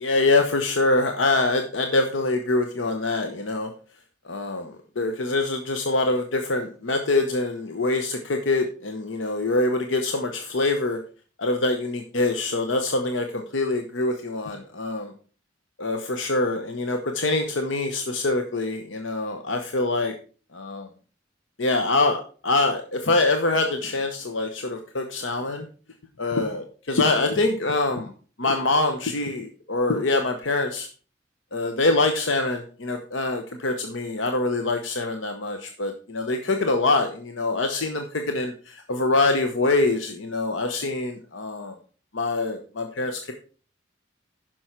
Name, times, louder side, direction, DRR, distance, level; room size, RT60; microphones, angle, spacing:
voice 1, 0.0-3.7 4.3-4.7 5.0-11.0 11.4-15.1 15.8-20.1 20.5-20.9 21.6-25.6 26.2-28.1 28.4-30.9 31.5-41.7 42.1-43.3, left 2 dB, 85° left, 5 dB, 0.9 m, -24 dB
10.0 x 6.2 x 4.5 m, 0.39 s
head